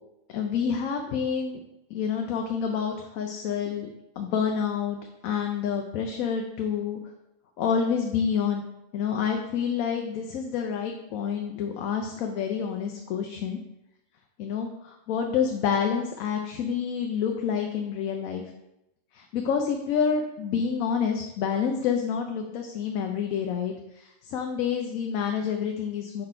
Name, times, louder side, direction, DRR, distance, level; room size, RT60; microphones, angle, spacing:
voice 1, 0.3-1.6 1.9-3.9 4.2-5.0 5.2-7.0 7.6-8.7 8.9-13.6 14.4-18.4 19.1-26.2, left 7 dB, 85° left, 3 dB, 1.0 m, -28 dB
5.5 x 4.1 x 4.3 m, 0.89 s
omnidirectional pair, 1.4 m